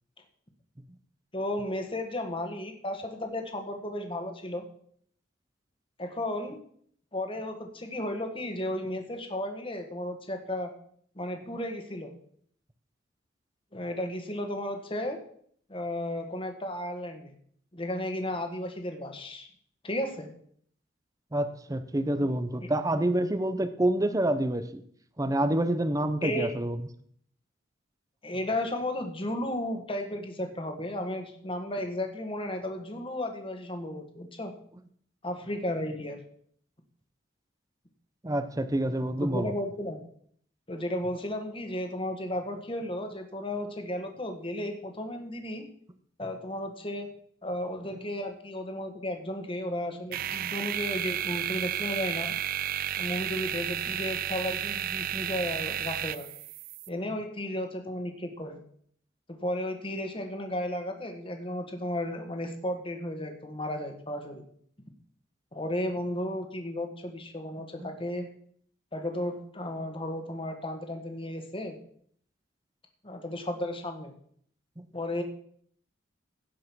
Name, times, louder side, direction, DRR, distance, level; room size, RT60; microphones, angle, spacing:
voice 1, 1.3-4.7 6.0-6.6 7.1-10.7 11.1-12.1 13.7-15.2 15.7-17.4 17.7-19.5 19.8-20.3 22.6-22.7 26.2-26.5 28.2-34.5 35.2-36.2 39.2-40.0 40.7-45.6 46.2-47.1 47.4-52.3 53.0-56.3 56.9-58.6 59.3-64.4 65.5-68.3 68.9-71.8 73.0-74.1 74.9-75.2, left 1 dB, 25° left, 5 dB, 1.6 m, -34 dB
voice 2, 21.3-24.8 25.2-26.8 38.2-39.5 47.9-48.0 57.1-57.2 67.8-67.9 74.8-74.9, right 1 dB, 15° right, 10 dB, 0.7 m, -28 dB
sound 1, 50.1-56.9, right 11 dB, 45° right, 0.4 m, -32 dB
16.5 x 5.5 x 6.2 m, 0.62 s
head